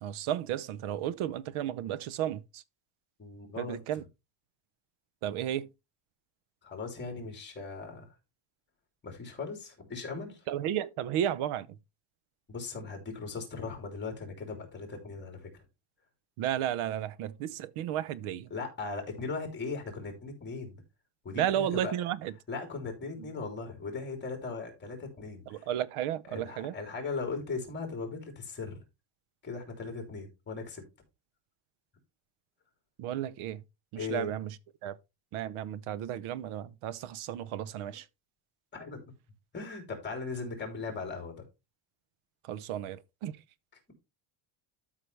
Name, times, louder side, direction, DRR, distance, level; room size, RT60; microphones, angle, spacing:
voice 1, 0.0-2.6 3.6-4.0 5.2-5.7 10.5-11.7 16.4-18.5 21.4-22.3 25.5-26.7 33.0-33.6 34.1-34.5 34.8-35.0 35.3-38.0 42.5-43.3, right 11 dB, 80° right, 0.8 m, -33 dB
voice 2, 3.2-4.0 6.6-8.1 9.0-10.5 12.5-15.6 18.5-20.8 21.2-21.9 22.5-25.7 26.3-28.8 29.4-30.8 34.0-34.3 38.7-39.1 39.5-41.4, left 4 dB, 20° left, 3.2 m, -38 dB
12.5 x 5.7 x 3.3 m
cardioid pair, 180°, 50 cm